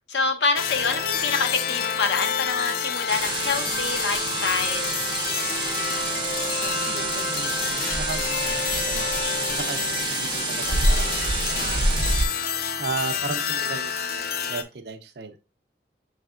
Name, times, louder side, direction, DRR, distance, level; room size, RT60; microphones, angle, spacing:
voice 1, 0.1-5.0, left 4 dB, 85° left, 0.8 m, -26 dB
sound 1, 0.6-14.6, left 7 dB, 55° left, 0.4 m, -28 dB
sound 2, 3.1-12.3, right 3 dB, 25° right, 0.5 m, -27 dB
voice 2, 6.6-9.8 10.2-12.0 12.8-15.4, right 4 dB, 65° right, 0.6 m, -36 dB
6.3 x 3.3 x 2.4 m
head